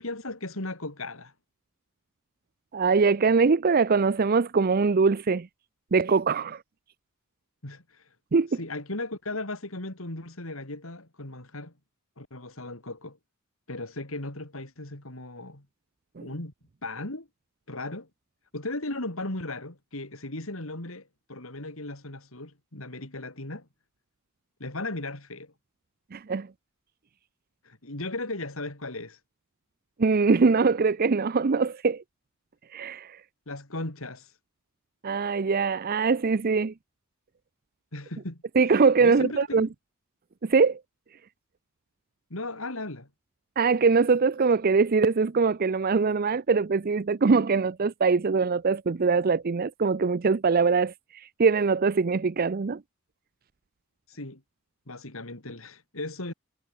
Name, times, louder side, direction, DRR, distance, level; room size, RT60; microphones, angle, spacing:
voice 1, 0.0-1.3 7.6-8.1 8.6-11.7 12.2-13.2 13.7-15.7 16.2-16.5 16.8-17.3 17.7-18.1 18.5-23.7 24.6-25.5 27.6-29.2 33.5-34.3 37.9-38.4 39.0-39.7 42.3-43.1 54.1-54.4 54.9-56.3, left 2 dB, 70° left, 3.8 m, -36 dB
voice 2, 2.7-5.5 5.9-6.6 8.3-8.5 16.2-16.3 26.1-26.5 30.0-32.0 32.7-33.2 35.0-36.7 38.6-39.7 40.4-40.8 43.6-52.8, right 4 dB, 45° right, 0.5 m, -22 dB
head